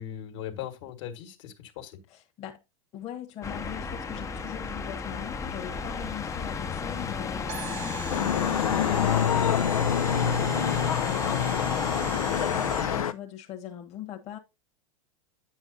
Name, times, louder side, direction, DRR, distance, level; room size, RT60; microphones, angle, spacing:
voice 1, 0.0-2.0 8.3-8.4, left 10 dB, 55° left, 1.9 m, -39 dB
voice 2, 2.1-2.6 2.9-14.4, left 11 dB, 35° left, 1.5 m, -41 dB
sound 1, 3.4-13.0, left 5 dB, 15° left, 0.7 m, -33 dB
sound 2, 7.5-13.0, right 10 dB, 60° right, 1.1 m, -41 dB
sound 3, 8.1-13.1, left 8 dB, 75° left, 0.6 m, -26 dB
9.7 x 7.4 x 2.7 m
figure-of-eight pair, 95°, 18 cm